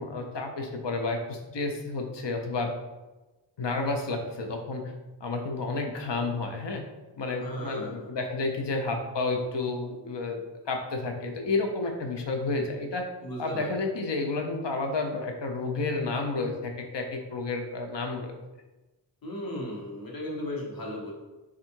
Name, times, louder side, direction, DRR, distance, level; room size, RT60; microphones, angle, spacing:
voice 1, 0.0-2.7 3.6-4.9 5.2-6.8 7.2-10.4 10.7-13.0 13.4-18.3, left 3 dB, 70° left, 4 dB, 0.7 m, -31 dB
voice 2, 7.4-8.1 13.2-13.8 19.2-21.1, left 1 dB, 50° left, -2 dB, 1.1 m, -36 dB
3.6 x 2.5 x 4.4 m, 1.1 s
wide cardioid pair, 65°, 44 cm